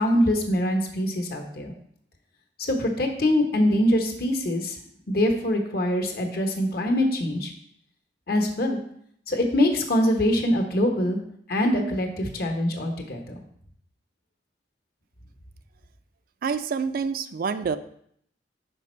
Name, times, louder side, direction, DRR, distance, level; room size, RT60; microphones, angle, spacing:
voice 1, 0.0-1.7 2.6-4.8 5.1-7.5 8.3-8.8 9.3-11.2 11.5-13.4, left 1 dB, 60° left, 4 dB, 1.0 m, -23 dB
voice 2, 16.4-17.8, right 5 dB, 55° right, 11 dB, 0.3 m, -27 dB
5.2 x 5.1 x 4.3 m, 0.67 s
head